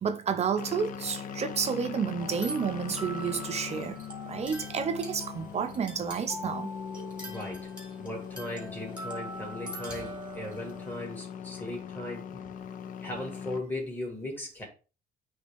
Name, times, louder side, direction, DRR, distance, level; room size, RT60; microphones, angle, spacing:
voice 1, 0.0-6.7, right 6 dB, 40° right, 0.6 m, -31 dB
sound 1, 0.6-13.6, left 8 dB, 55° left, 0.5 m, -41 dB
sound 2, 2.2-11.1, right 1 dB, 5° right, 2.0 m, -43 dB
voice 2, 7.3-7.7 8.0-12.6 13.0-14.6, left 1 dB, 10° left, 2.4 m, -38 dB
8.3 x 3.3 x 3.4 m
cardioid pair, 110°, 17 cm